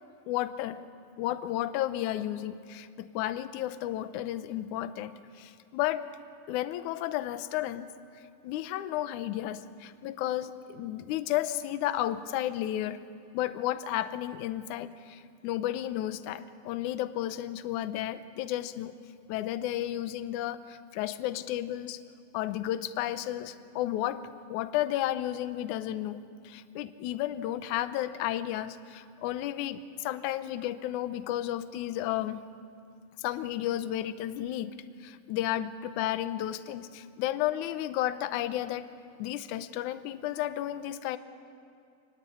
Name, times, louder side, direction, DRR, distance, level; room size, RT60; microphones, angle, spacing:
voice 1, 0.3-0.8 1.2-6.1 6.5-7.9 8.4-13.0 13.3-18.9 19.3-22.0 22.3-32.4 33.2-38.9 39.2-41.2, left 13 dB, 70° left, 12 dB, 2.0 m, -33 dB
27.5 x 20.0 x 8.5 m, 2.4 s
omnidirectional pair, 4.1 m